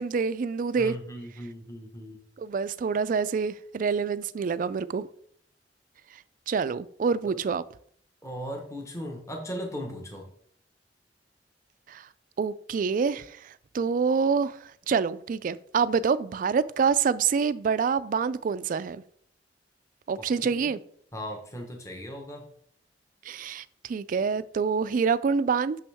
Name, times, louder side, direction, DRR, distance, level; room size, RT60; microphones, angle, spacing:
voice 1, 0.0-1.0 2.4-5.1 6.5-7.6 11.9-12.1 12.4-14.6 14.9-19.0 20.1-20.8 23.3-25.8, right 5 dB, 50° right, 0.3 m, -26 dB
voice 2, 0.8-2.2 7.3-7.4 8.2-10.3 20.5-20.8 21.1-22.4, equal, 15° left, 1.1 m, -37 dB
6.2 x 5.9 x 3.5 m
head